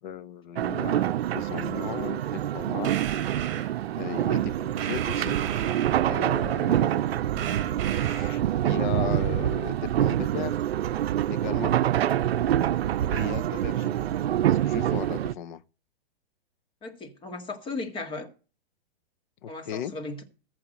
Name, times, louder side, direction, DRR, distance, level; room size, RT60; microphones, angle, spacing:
voice 1, 0.0-2.9 4.0-5.4 6.1-10.6 11.3-11.7 13.1-14.0 14.5-15.6 19.4-19.9, left 9 dB, 50° left, 1.1 m, -37 dB
sound 1, 0.6-15.3, right 11 dB, 80° right, 0.6 m, -26 dB
sound 2, 2.8-3.7 4.8-6.3 7.4-8.4, right 9 dB, 30° right, 2.8 m, -35 dB
voice 2, 13.3-13.6 16.8-18.3 19.5-20.2, left 3 dB, 15° left, 1.9 m, -37 dB
14.5 x 4.9 x 7.7 m
hypercardioid pair, 150°, 31 cm